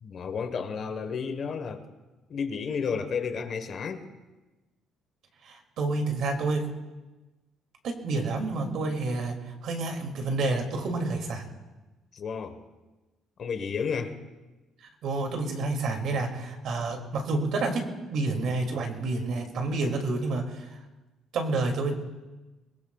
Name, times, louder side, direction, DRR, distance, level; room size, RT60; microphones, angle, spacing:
voice 1, 0.0-1.8 2.3-4.1 12.1-12.6 13.4-14.1, left 6 dB, 40° left, 8 dB, 1.3 m, -32 dB
voice 2, 5.4-6.7 7.8-11.4 15.0-17.8 18.1-20.8 21.3-21.9, right 3 dB, 60° right, 3 dB, 2.5 m, -29 dB
23.0 x 22.0 x 2.4 m, 1.1 s
cardioid pair, 160°, 0 cm